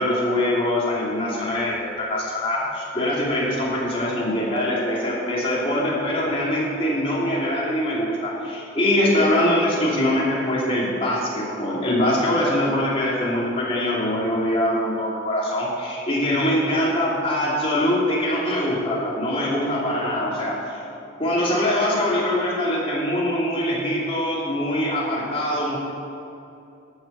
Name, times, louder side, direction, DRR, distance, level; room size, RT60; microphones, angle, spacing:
voice 1, 0.0-20.8 21.2-25.8, left 1 dB, 30° left, -6 dB, 2.7 m, -23 dB
13.5 x 6.7 x 5.8 m, 2.7 s
head